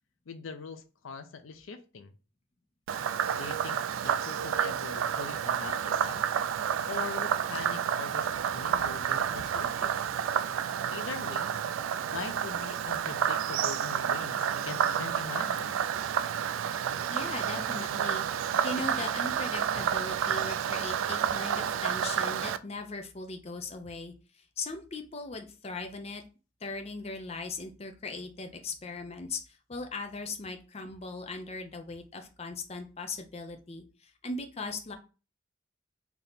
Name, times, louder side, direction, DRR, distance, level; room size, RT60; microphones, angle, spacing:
voice 1, 0.3-2.1 3.3-6.3 6.9-10.1 10.9-11.6 12.1-15.8, left 5 dB, 85° left, 9 dB, 0.5 m, -42 dB
Frog, 2.9-22.6, right 8 dB, 85° right, 0.3 m, -30 dB
voice 2, 17.1-26.2 26.6-34.9, left 3 dB, 30° left, 5 dB, 0.6 m, -39 dB
3.5 x 2.8 x 3.9 m, 0.34 s
head